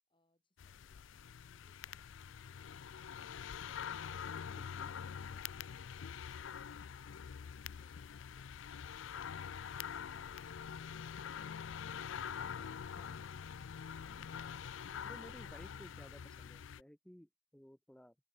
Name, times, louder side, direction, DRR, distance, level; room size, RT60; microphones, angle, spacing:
voice 1, 0.1-4.2, left 1 dB, 25° left, 7.9 m, -78 dB
sound 1, 0.6-16.8, left 7 dB, 85° left, 0.4 m, -45 dB
voice 2, 4.5-4.9 13.0-13.2 15.0-18.2, equal, 5° left, 0.6 m, -57 dB
head